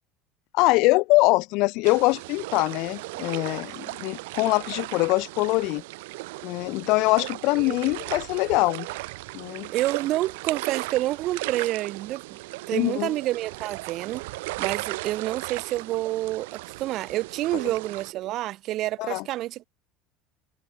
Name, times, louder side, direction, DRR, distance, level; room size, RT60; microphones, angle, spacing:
voice 1, 0.5-5.8 6.4-8.9 9.3-9.7 12.7-13.1 19.0-19.2, left 24 dB, 60° left, 0.4 m, -23 dB
sound 1, 1.8-18.1, right 22 dB, 85° right, 0.7 m, -36 dB
voice 2, 9.7-12.4 12.7-14.2 14.6-19.7, right 15 dB, 45° right, 2.7 m, -28 dB
cardioid pair, 155°, 0 cm